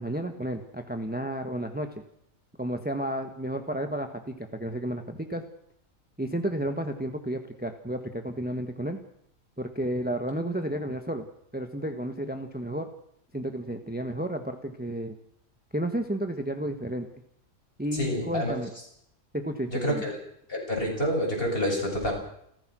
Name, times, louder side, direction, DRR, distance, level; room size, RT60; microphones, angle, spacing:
voice 1, 0.0-1.9 2.6-5.4 6.2-9.0 9.6-11.2 11.5-12.9 13.3-15.2 15.7-17.1 17.8-18.7 19.3-20.0, right 1 dB, 5° right, 6 dB, 1.5 m, -32 dB
voice 2, 17.9-18.6 19.7-20.1 20.5-22.1, equal, 40° left, 0 dB, 7.6 m, -28 dB
30.0 x 14.0 x 6.3 m, 0.73 s
omnidirectional pair, 1.4 m